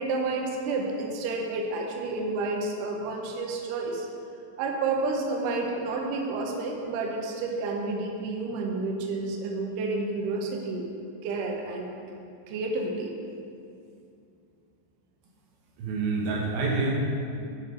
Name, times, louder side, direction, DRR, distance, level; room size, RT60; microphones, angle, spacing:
voice 1, 0.0-4.1 4.6-10.9 11.2-12.2 12.5-13.1, right 3 dB, 90° right, 0 dB, 1.8 m, -30 dB
voice 2, 15.8-16.9, right 3 dB, 70° right, -3 dB, 3.0 m, -27 dB
9.4 x 5.9 x 4.9 m, 2.5 s
omnidirectional pair, 5.1 m